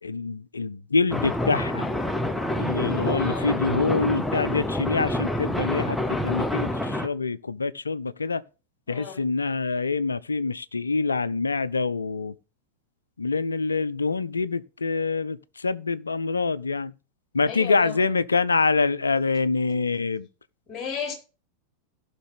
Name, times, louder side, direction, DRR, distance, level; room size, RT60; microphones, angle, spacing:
voice 1, 0.0-1.9 2.6-8.4 8.9-12.3 13.2-16.9 17.3-20.3, left 4 dB, 75° left, 0.5 m, -26 dB
sound 1, 1.1-7.1, left 1 dB, 5° left, 0.7 m, -27 dB
voice 2, 2.8-3.6 8.9-9.2 17.5-18.1 20.7-21.1, left 7 dB, 25° left, 3.8 m, -34 dB
17.0 x 5.9 x 3.3 m
figure-of-eight pair, 90°, 0 cm